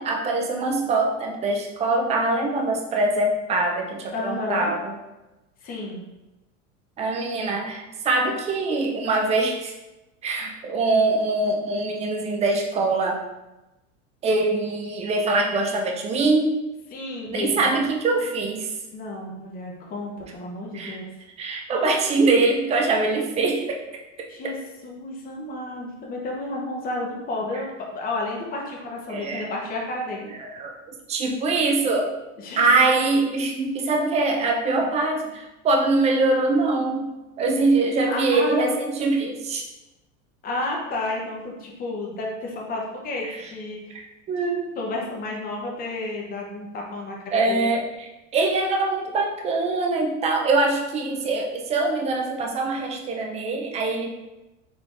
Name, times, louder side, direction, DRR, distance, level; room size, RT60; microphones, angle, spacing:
voice 1, 0.0-4.9 7.0-9.7 10.2-13.2 14.2-16.6 17.3-18.7 20.7-21.0 21.4-23.8 29.1-29.5 30.4-30.8 31.1-32.1 32.6-37.1 37.4-39.6 43.2-43.4 44.3-44.7 47.3-54.1, right 3 dB, 20° right, 1 dB, 0.4 m, -23 dB
voice 2, 4.1-4.7 5.6-6.0 16.9-17.8 18.9-21.1 24.3-24.6 24.8-30.3 32.4-32.7 38.0-38.9 40.4-43.9 44.8-47.6, left 2 dB, 25° left, -2 dB, 0.7 m, -31 dB
3.8 x 3.2 x 2.5 m, 1.0 s
supercardioid pair, 125°, 37 cm